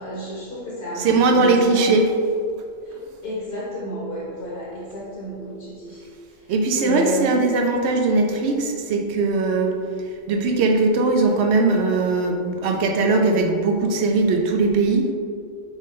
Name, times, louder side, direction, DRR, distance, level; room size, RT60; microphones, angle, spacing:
voice 1, 0.0-2.0 2.8-6.0 6.8-7.4, equal, 55° left, -5 dB, 1.1 m, -31 dB
voice 2, 1.0-2.1 6.5-9.7 10.3-15.1, right 3 dB, 65° right, 3 dB, 0.8 m, -20 dB
3.8 x 3.7 x 3.7 m, 2.2 s
omnidirectional pair, 1.3 m